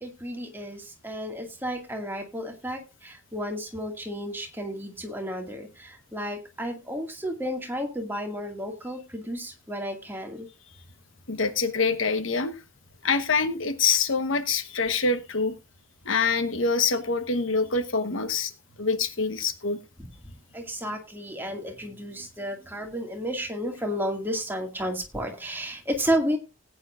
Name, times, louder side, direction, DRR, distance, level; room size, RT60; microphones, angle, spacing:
voice 1, 0.0-10.5 20.2-26.4, equal, 10° right, 2 dB, 2.1 m, -32 dB
voice 2, 11.3-12.5 13.0-15.5 16.0-18.5 18.8-19.8, left 4 dB, 70° left, 10 dB, 1.2 m, -25 dB
18.5 x 9.3 x 2.5 m, 0.26 s
head